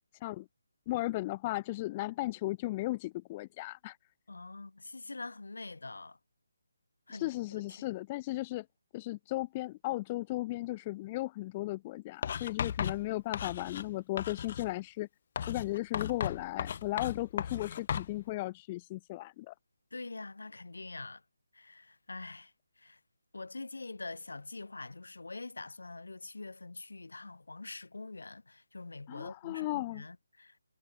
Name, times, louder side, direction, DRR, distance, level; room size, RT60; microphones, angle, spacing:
voice 1, 0.9-4.0 7.1-8.6 8.9-15.1 15.5-19.5 29.1-30.0, left 18 dB, 20° left, 0.4 m, -36 dB
voice 2, 4.3-6.2 7.1-7.9 19.9-21.2 21.5-23.0 23.3-30.6, left 3 dB, 70° left, 2.9 m, -45 dB
Writing, 12.2-13.9 14.2-14.7 15.4-18.1, left 8 dB, 40° left, 1.4 m, -36 dB
figure-of-eight pair, 150°, 0 cm